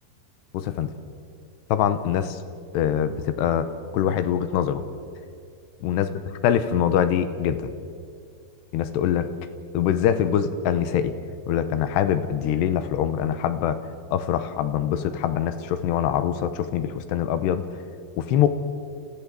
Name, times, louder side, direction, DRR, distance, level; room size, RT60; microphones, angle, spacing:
voice 1, 0.5-0.9 1.7-2.4 2.7-4.8 5.8-6.1 6.4-7.7 8.7-9.3 9.7-11.1 11.5-13.8 14.1-17.7 18.2-18.5, left 9 dB, 80° left, 11 dB, 3.0 m, -23 dB
29.5 x 14.5 x 7.6 m, 2.2 s
omnidirectional pair, 4.9 m